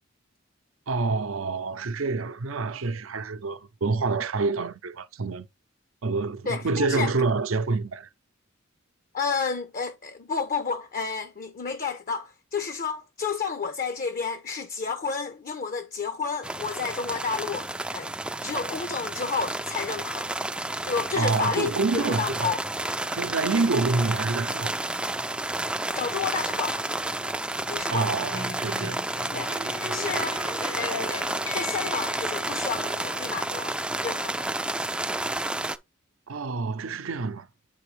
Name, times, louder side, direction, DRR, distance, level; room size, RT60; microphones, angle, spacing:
voice 1, 0.9-5.5 6.0-8.1 21.2-22.5 23.1-24.9 27.9-29.0 29.9-30.0 36.3-37.5, right 3 dB, 85° right, 0.6 m, -27 dB
voice 2, 6.5-7.1 9.1-18.1 18.4-20.3 20.8-22.6 25.9-27.0 27.7-28.3 29.3-30.4 30.8-34.5, left 5 dB, 45° left, 0.6 m, -31 dB
sound 1, 16.4-35.8, right 2 dB, 5° right, 0.3 m, -31 dB
sound 2, 28.2-33.3, left 3 dB, 75° left, 1.3 m, -39 dB
9.1 x 3.4 x 3.2 m
head